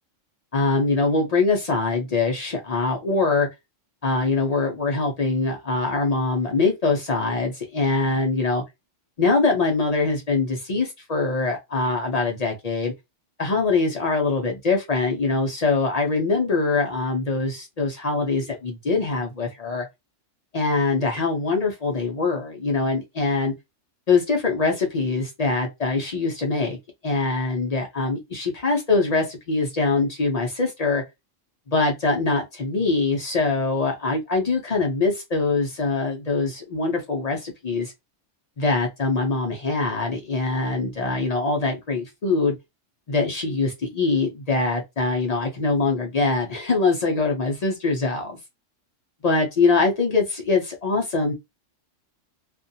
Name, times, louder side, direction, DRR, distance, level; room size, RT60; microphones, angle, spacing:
voice 1, 0.5-3.5 4.0-8.6 9.2-12.9 13.4-19.9 20.5-23.5 24.1-26.8 27.0-31.0 31.7-37.9 38.6-42.6 43.1-48.4 49.2-51.3, left 3 dB, 50° left, 0.5 m, -23 dB
2.5 x 2.2 x 2.6 m
omnidirectional pair, 1.3 m